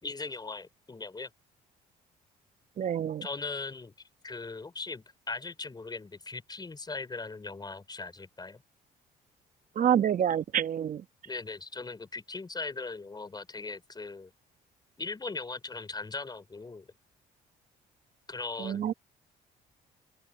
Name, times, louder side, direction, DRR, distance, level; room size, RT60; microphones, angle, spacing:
voice 1, 0.0-1.3 3.2-3.9 4.2-8.6 11.2-14.3 15.0-16.9 18.3-18.9, left 3 dB, 25° left, 5.1 m, -39 dB
voice 2, 2.8-3.2 9.7-11.0 18.6-18.9, right 9 dB, 50° right, 1.2 m, -27 dB
open air
supercardioid pair, 80°, 17 cm